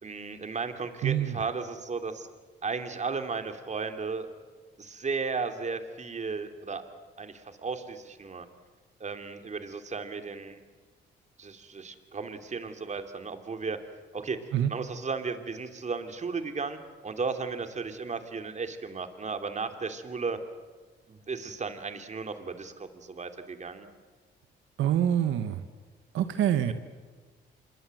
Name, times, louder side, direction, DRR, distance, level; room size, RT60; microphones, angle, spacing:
voice 1, 0.0-2.3 2.6-4.3 4.8-6.8 7.2-8.5 9.0-10.6 11.4-13.8 14.1-14.4 14.7-16.8 17.0-20.4 21.1-23.9, right 4 dB, 35° right, 7 dB, 2.8 m, -35 dB
voice 2, 1.0-1.3 14.5-14.7 24.8-25.6 26.1-26.7, right 10 dB, 80° right, 9 dB, 1.4 m, -25 dB
26.0 x 22.0 x 7.8 m, 1.4 s
cardioid pair, 90°, 20 cm